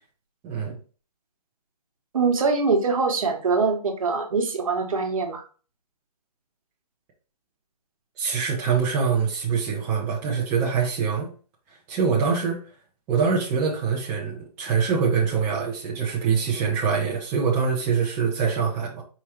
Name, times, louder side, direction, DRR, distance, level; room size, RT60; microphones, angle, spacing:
voice 1, 2.1-5.4 12.1-12.2, right 4 dB, 55° right, 3 dB, 1.2 m, -23 dB
voice 2, 8.2-11.3 11.9-12.6 13.1-19.0, right 6 dB, 10° right, -4 dB, 0.6 m, -24 dB
4.9 x 2.2 x 4.3 m, 0.37 s
hypercardioid pair, 155°, 20 cm